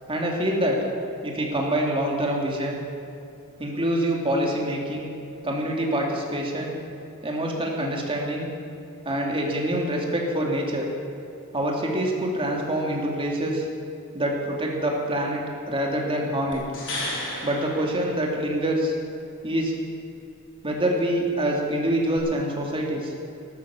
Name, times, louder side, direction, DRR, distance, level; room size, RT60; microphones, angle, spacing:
voice 1, 0.1-0.8 1.2-2.8 3.6-5.1 5.4-6.8 7.2-8.5 9.0-10.9 11.5-13.7 14.1-16.6 17.4-19.0 19.4-19.7 20.6-23.1, right 1 dB, 25° right, -1 dB, 2.5 m, -25 dB
sound 1, 16.5-18.8 22.2-22.3, left 1 dB, 60° left, 3.8 m, -34 dB
14.0 x 12.0 x 7.0 m, 2.7 s
head